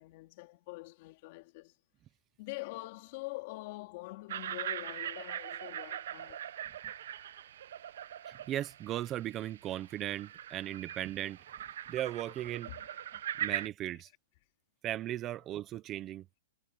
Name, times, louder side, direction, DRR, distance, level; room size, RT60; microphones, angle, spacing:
voice 1, 0.0-1.8 2.4-6.5 12.6-12.8, left 22 dB, 40° left, 3.2 m, -45 dB
sound 1, 4.3-13.7, right 11 dB, 60° right, 1.0 m, -41 dB
voice 2, 8.3-11.4 11.9-12.7 13.4-14.1 14.8-16.2, right 13 dB, 20° right, 0.9 m, -37 dB
hypercardioid pair, 165°, 0 cm